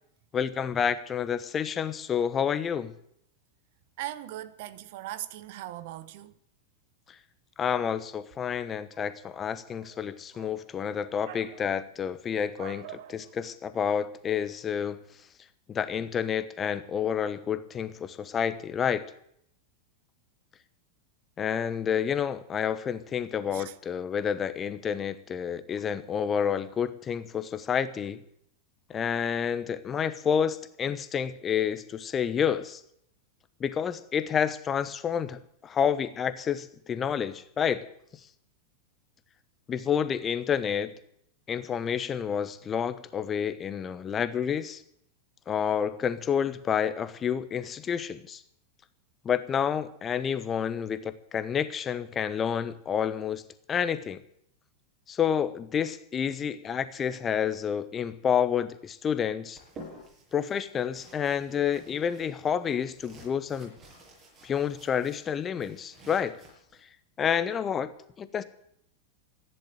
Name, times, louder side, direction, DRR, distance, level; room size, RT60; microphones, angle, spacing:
voice 1, 0.3-2.9 7.6-15.0 15.7-19.0 21.4-28.2 28.9-32.8 33.6-37.8 39.7-40.9 41.5-44.8 45.5-48.4 49.2-53.4 53.7-54.2 55.1-59.6 60.3-63.7 64.4-66.4 67.2-67.9 68.2-68.4, left 8 dB, 25° left, 1.0 m, -29 dB
voice 2, 4.0-6.3 10.4-10.5 11.2-11.6 12.6-13.2 23.5-23.7, right 14 dB, 50° right, 1.0 m, -40 dB
sound 1, 59.5-66.8, right 1 dB, 30° right, 7.9 m, -51 dB
14.5 x 10.5 x 9.1 m
figure-of-eight pair, 90°, 0 cm